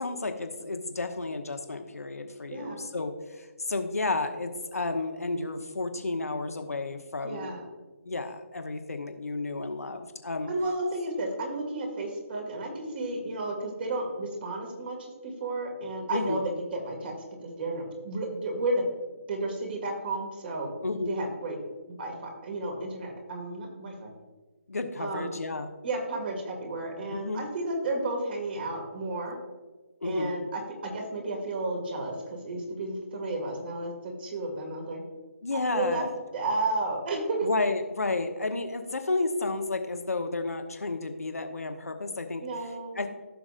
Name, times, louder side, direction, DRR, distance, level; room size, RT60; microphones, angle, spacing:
voice 1, 0.0-7.6 8.0-10.5 16.1-16.4 20.8-21.2 24.7-25.7 27.1-27.4 30.0-30.3 35.4-36.1 37.4-42.4 42.9-43.1, left 3 dB, 90° left, 6 dB, 1.1 m, -32 dB
voice 2, 2.5-2.9 7.2-7.6 10.5-17.1 17.4-18.9 19.3-20.7 21.1-21.6 21.9-24.1 25.0-25.3 25.8-29.4 30.0-35.0 35.7-36.0 36.3-37.5 42.4-43.1, right 2 dB, 45° right, 2 dB, 2.1 m, -32 dB
15.0 x 6.2 x 2.5 m, 1.3 s
figure-of-eight pair, 155°, 8 cm